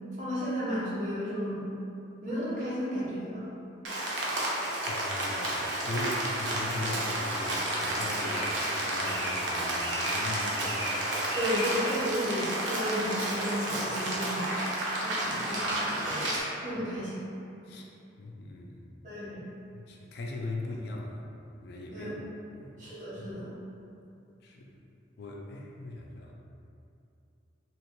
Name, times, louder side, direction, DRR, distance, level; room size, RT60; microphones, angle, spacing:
voice 1, 0.2-1.6 2.2-3.4 11.4-14.5 14.9-17.2 19.0-19.4 21.9-22.1 22.8-23.5, equal, 40° right, -10 dB, 0.9 m, -33 dB
Rain, 3.8-16.4, right 1 dB, 80° right, 0.6 m, -31 dB
voice 2, 4.8-10.9 16.7-16.8 17.6-17.9 18.2-18.8 19.7-21.3 21.6-22.1 22.5-22.9 24.4-24.8 25.2-26.3, left 2 dB, 60° left, -1 dB, 0.3 m, -39 dB
2.9 x 2.4 x 3.0 m, 2.7 s
head